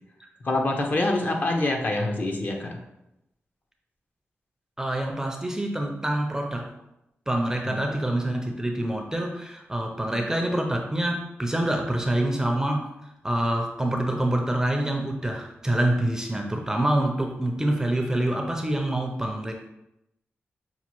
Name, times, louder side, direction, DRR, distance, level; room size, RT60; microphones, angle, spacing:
voice 1, 0.4-2.8 7.7-7.8 10.1-10.2, left 2 dB, 40° left, 2 dB, 0.6 m, -25 dB
voice 2, 4.8-6.7 7.3-19.5, right 1 dB, 15° right, 2 dB, 0.4 m, -26 dB
5.5 x 2.3 x 2.9 m, 0.87 s
wide cardioid pair, 125°, 4 cm